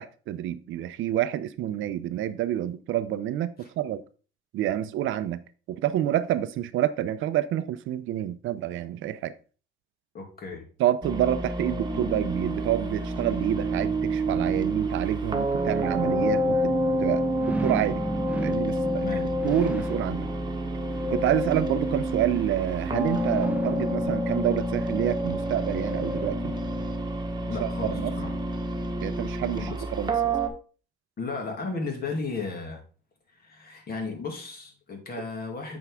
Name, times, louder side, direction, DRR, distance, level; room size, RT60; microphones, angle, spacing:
voice 1, 0.0-4.0 4.5-9.4 10.8-16.7 17.0-18.0 18.4-19.1 19.4-20.3 21.1-26.5 27.6-28.1 29.0-30.4, right 12 dB, 80° right, 0.6 m, -28 dB
voice 2, 10.1-10.6 18.9-19.3 27.4-28.3 29.6-29.7 31.2-32.8 33.4-35.8, left 4 dB, 50° left, 2.4 m, -34 dB
sound 1, 11.0-30.5, right 1 dB, 20° right, 1.2 m, -28 dB
sound 2, 12.9-26.8 27.3-27.4, right 2 dB, 5° right, 0.5 m, -39 dB
8.4 x 4.6 x 3.6 m
cardioid pair, 90°, 20 cm